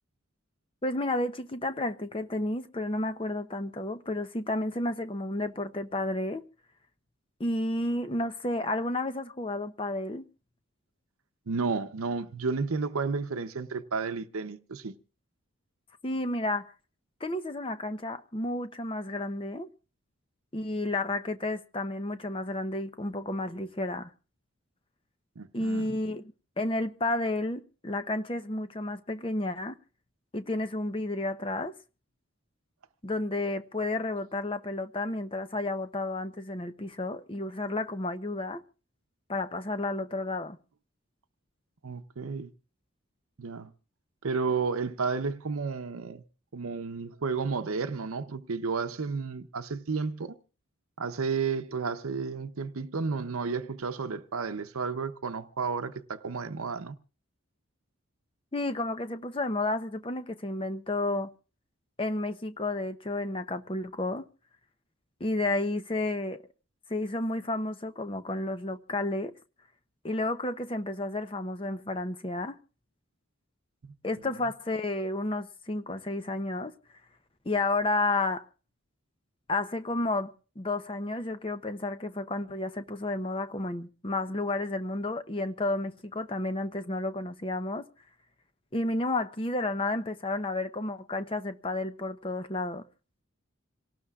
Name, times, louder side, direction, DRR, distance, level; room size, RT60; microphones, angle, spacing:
voice 1, 0.8-6.4 7.4-10.2 16.0-16.7 17.2-19.7 20.5-24.1 25.5-29.8 30.3-31.7 33.0-38.6 39.3-40.6 58.5-61.3 62.0-64.2 65.2-66.4 66.9-69.3 70.0-72.6 74.0-76.7 77.4-78.5 79.5-87.9 88.7-92.8, left 2 dB, 25° left, 0.7 m, -31 dB
voice 2, 11.5-14.9 25.4-25.9 41.8-42.5 43.4-43.7 44.2-46.2 46.5-50.4 51.0-56.9 73.8-73.9 74.2-74.4, right 4 dB, 85° right, 0.7 m, -32 dB
27.5 x 18.0 x 2.4 m
head